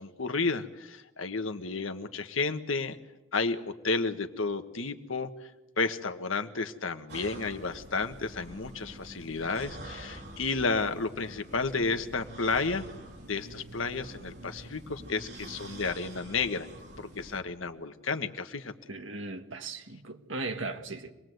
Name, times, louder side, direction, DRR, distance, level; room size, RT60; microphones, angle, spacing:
voice 1, 0.0-3.0 3.3-5.3 5.8-12.8 13.3-16.7 17.0-18.7, left 4 dB, 90° left, 1.5 m, -32 dB
sound 1, 7.1-17.4, right 1 dB, 55° right, 4.3 m, -46 dB
voice 2, 18.9-21.1, right 3 dB, 75° right, 1.8 m, -37 dB
26.0 x 20.5 x 8.0 m
head